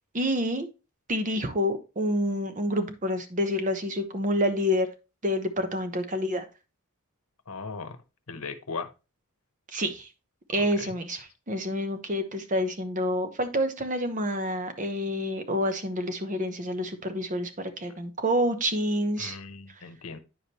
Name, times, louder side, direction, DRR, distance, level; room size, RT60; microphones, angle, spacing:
voice 1, 0.1-0.7 1.1-4.9 5.2-6.4 9.7-10.1 10.5-19.4, equal, 35° right, 1.0 m, -28 dB
voice 2, 7.5-8.0 8.3-8.9 10.5-10.9 19.2-20.2, left 4 dB, 75° left, 1.0 m, -38 dB
9.5 x 5.0 x 3.0 m
head